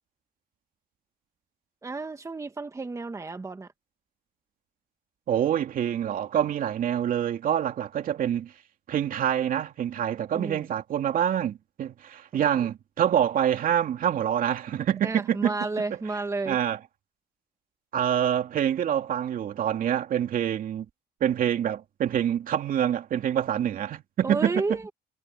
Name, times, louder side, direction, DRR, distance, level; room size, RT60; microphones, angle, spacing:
voice 1, 1.8-3.7 10.3-10.7 12.6-12.7 15.0-16.6 24.2-24.9, right 3 dB, 20° right, 1.7 m, -31 dB
voice 2, 5.3-8.5 8.9-15.5 16.5-16.8 17.9-20.9 21.2-24.6, right 10 dB, 55° right, 2.7 m, -26 dB
cardioid pair, 110°, 17 cm